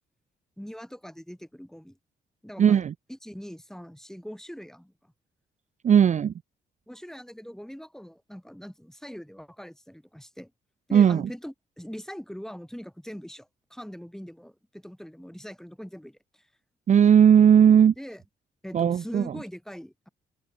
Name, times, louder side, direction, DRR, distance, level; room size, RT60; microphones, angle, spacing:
voice 1, 0.6-2.0 2.4-2.8 3.1-4.9 6.9-10.5 10.9-16.4 18.0-18.2 18.6-20.1, equal, ahead, 7.4 m, -42 dB
voice 2, 2.6-2.9 5.8-6.3 10.9-11.3 16.9-17.9 18.7-19.2, right 8 dB, 35° right, 0.4 m, -17 dB
open air
hypercardioid pair, 45°, 20 cm